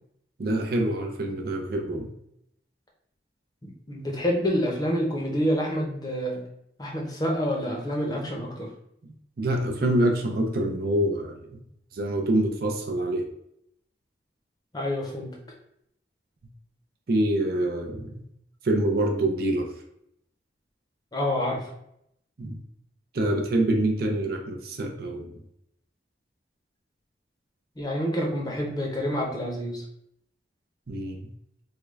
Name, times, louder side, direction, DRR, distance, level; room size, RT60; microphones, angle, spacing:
voice 1, 0.4-2.1 9.0-11.6 11.9-13.3 17.1-18.2 18.6-19.7 22.4-22.6 23.1-25.3 30.9-31.3, right 1 dB, 50° right, 3 dB, 0.5 m, -26 dB
voice 2, 3.6-6.4 6.8-8.7 14.7-15.3 21.1-21.7 27.8-29.8, equal, 20° left, -1 dB, 0.7 m, -28 dB
3.6 x 2.2 x 3.2 m, 0.74 s
head